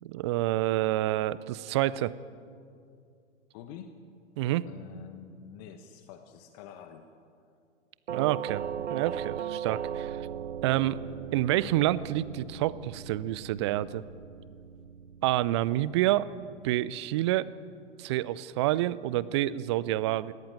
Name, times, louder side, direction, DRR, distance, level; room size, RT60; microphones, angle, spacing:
voice 1, 0.0-2.1 4.4-4.7 8.1-8.6 8.9-10.2 10.6-11.0 11.3-14.0 15.2-16.3 16.6-17.5 18.0-20.3, right 15 dB, 25° right, 19 dB, 0.4 m, -28 dB
voice 2, 3.5-4.0 4.6-7.1, left 8 dB, 35° left, 7 dB, 1.2 m, -47 dB
Doorbell, 8.1-16.9, right 8 dB, 65° right, 0.9 m, -38 dB
19.0 x 17.0 x 9.2 m, 2.4 s
figure-of-eight pair, 105°, 36 cm